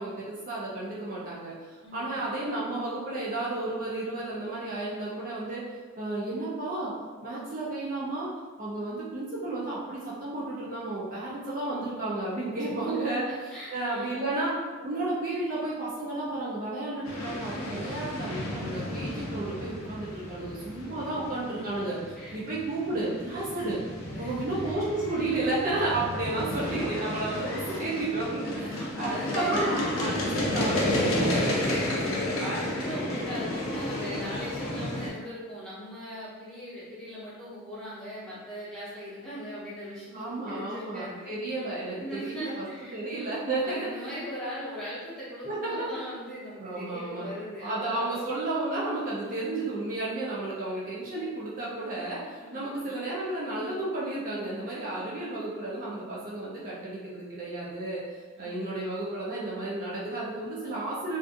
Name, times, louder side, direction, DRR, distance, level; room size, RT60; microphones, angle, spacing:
voice 1, 0.0-5.6 6.0-6.9 7.2-8.3 8.6-13.2 13.7-14.5 14.8-22.0 22.3-23.8 24.1-31.5 40.1-42.7 42.9-44.1 45.4-45.9 46.6-47.3 47.6-58.0 58.4-61.2, right 2 dB, 35° right, -7 dB, 0.4 m, -32 dB
voice 2, 13.3-14.3 20.9-21.8 22.1-22.4 24.1-24.6 28.5-29.6 30.0-30.3 31.3-41.3 42.0-43.0 43.6-48.2 50.7-50.8 52.4-52.9 54.9-55.0 58.4-58.7, equal, 5° left, -11 dB, 0.7 m, -39 dB
sound 1, 17.0-35.1, left 1 dB, 60° left, 0.5 m, -32 dB
2.5 x 2.4 x 2.4 m, 1.4 s
head